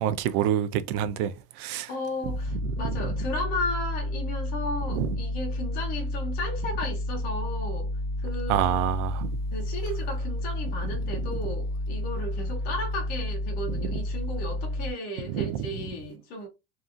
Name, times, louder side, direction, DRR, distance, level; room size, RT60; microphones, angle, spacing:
voice 1, 0.0-1.3 1.6-1.9 4.9-5.1 8.5-9.1 15.3-15.4, right 10 dB, 90° right, 0.5 m, -26 dB
voice 2, 1.9-7.9 8.2-9.0 9.5-16.5, left 1 dB, 20° left, 0.4 m, -34 dB
sound 1, 2.2-14.9, left 1 dB, 5° right, 1.3 m, -31 dB
2.7 x 2.4 x 2.4 m
cardioid pair, 175°, 43 cm